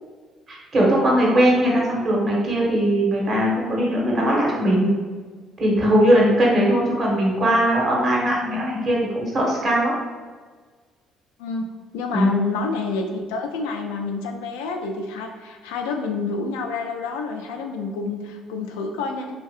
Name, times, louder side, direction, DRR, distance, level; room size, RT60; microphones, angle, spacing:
voice 1, 0.5-4.9 5.6-9.9 12.1-12.3, equal, 45° right, -3 dB, 1.0 m, -20 dB
voice 2, 11.9-19.4, left 4 dB, 85° left, 3 dB, 0.3 m, -28 dB
2.8 x 2.6 x 2.4 m, 1.5 s
hypercardioid pair, 60°, 0 cm